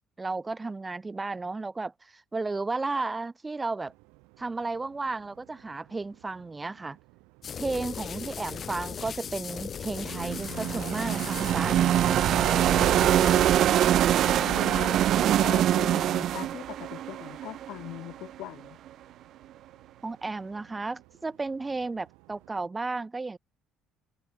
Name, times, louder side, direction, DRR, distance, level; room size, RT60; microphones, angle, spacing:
voice 1, 0.2-3.9 4.4-7.0 7.6-11.7 20.0-23.4, right 3 dB, 20° right, 2.1 m, -34 dB
sound 1, 3.8-22.7, right 28 dB, 85° right, 4.3 m, -59 dB
sound 2, 7.4-13.5, left 7 dB, 45° left, 1.2 m, -37 dB
sound 3, 10.0-18.1, right 11 dB, 60° right, 0.3 m, -24 dB
voice 2, 12.7-18.8, left 17 dB, 75° left, 0.4 m, -41 dB
supercardioid pair, 90°, 0 cm